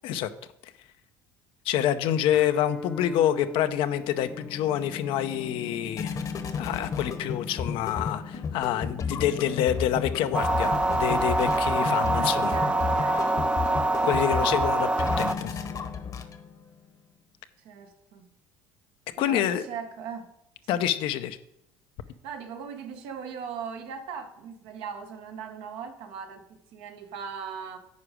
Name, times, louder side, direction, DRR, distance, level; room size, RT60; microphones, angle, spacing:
voice 1, 1.7-6.2 6.6-12.6 14.0-15.6 19.2-19.6 20.7-21.4, left 11 dB, 70° left, 0.6 m, -27 dB
Guitar, 2.3-10.1, left 3 dB, 10° left, 0.8 m, -43 dB
sound 1, 4.1-16.7, left 5 dB, 40° left, 1.0 m, -33 dB
sound 2, 10.3-15.3, right 2 dB, 10° right, 0.4 m, -25 dB
voice 2, 11.4-13.5 17.6-18.3 19.2-20.3 20.7-20.8 22.2-27.8, right 6 dB, 75° right, 1.0 m, -39 dB
9.5 x 4.9 x 5.0 m
supercardioid pair, 85°, 9 cm